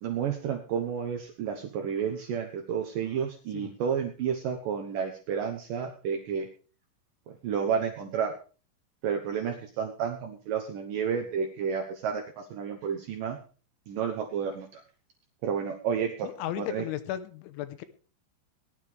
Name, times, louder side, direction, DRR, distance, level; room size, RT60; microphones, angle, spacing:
voice 1, 0.0-6.5 7.4-8.3 9.0-13.4 13.9-14.8 15.4-16.9, right 7 dB, 75° right, 3 dB, 2.0 m, -31 dB
voice 2, 16.2-17.8, left 12 dB, 85° left, 10 dB, 3.3 m, -35 dB
19.5 x 12.0 x 3.4 m, 0.36 s
omnidirectional pair, 5.5 m